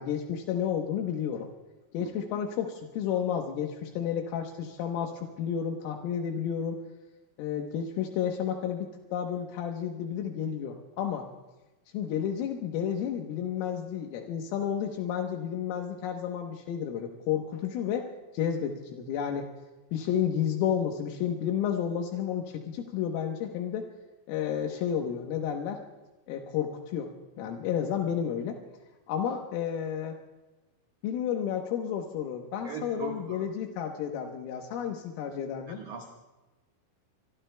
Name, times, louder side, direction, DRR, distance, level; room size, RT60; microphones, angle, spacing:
voice 1, 0.0-1.5 1.9-6.8 7.4-11.3 11.9-18.1 18.3-19.5 19.9-23.8 24.3-25.8 26.3-27.1 27.4-28.6 29.1-30.2 31.0-35.8, left 8 dB, 80° left, 2 dB, 3.6 m, -31 dB
voice 2, 32.6-33.5 35.7-36.1, right 6 dB, 90° right, 0 dB, 1.7 m, -40 dB
25.0 x 24.5 x 2.2 m, 1.1 s
omnidirectional pair, 6.0 m